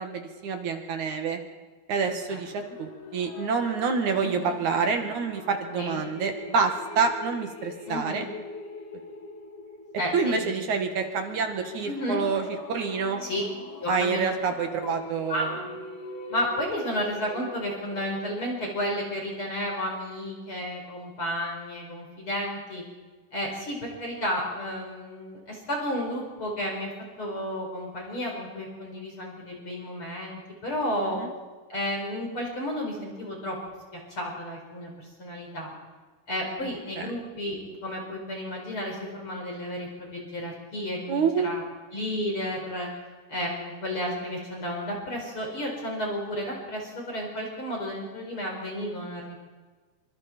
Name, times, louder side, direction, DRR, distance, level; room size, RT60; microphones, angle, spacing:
voice 1, 0.0-1.4 1.9-8.2 10.1-13.2 13.9-15.6 31.0-31.3 37.0-37.1 41.1-41.5, right 5 dB, 55° right, 5 dB, 3.0 m, -27 dB
sound 1, 2.4-18.5, left 2 dB, 55° left, 3.7 m, -42 dB
voice 2, 4.2-4.6 5.8-6.0 7.9-8.2 10.0-10.7 11.8-12.2 13.2-13.4 13.8-14.3 14.8-15.0 15.3-15.7 16.3-22.8 23.3-26.9 27.2-31.2 31.7-33.6 33.9-34.9 35.2-35.7 36.3-41.6 41.9-42.9 43.3-49.4, equal, 35° left, 0 dB, 5.2 m, -32 dB
25.5 x 25.0 x 4.5 m, 1.4 s
omnidirectional pair, 4.4 m